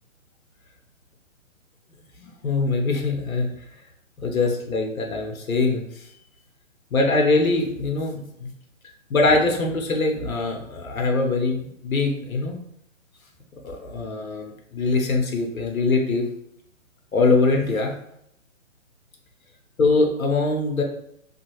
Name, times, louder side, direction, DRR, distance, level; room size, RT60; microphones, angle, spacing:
voice 1, 2.2-3.5 4.2-6.1 6.9-8.5 9.1-12.6 13.6-16.3 17.1-17.9 19.8-20.8, left 3 dB, 90° left, 2 dB, 0.8 m, -23 dB
2.7 x 2.6 x 2.9 m, 0.75 s
hypercardioid pair, 150°, 40 cm